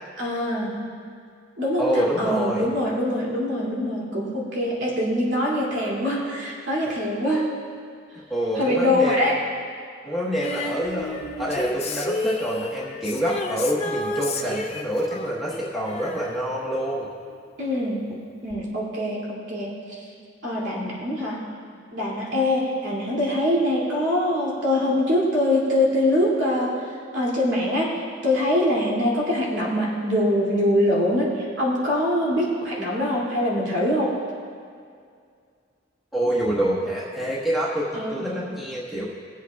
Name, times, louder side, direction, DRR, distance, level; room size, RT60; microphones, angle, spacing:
voice 1, 0.2-0.8 1.6-7.5 8.5-9.4 17.6-18.0 18.4-20.0 20.4-21.4 21.9-34.1 37.9-38.2, left 1 dB, 85° right, -5 dB, 2.6 m, -23 dB
voice 2, 1.8-2.7 6.8-6.9 8.3-9.3 10.0-17.1 36.1-39.1, equal, ahead, -7 dB, 1.3 m, -26 dB
Female singing, 10.4-17.4 18.5-18.6, left 2 dB, 35° left, 0.7 m, -32 dB
22.5 x 8.0 x 2.3 m, 2.2 s
head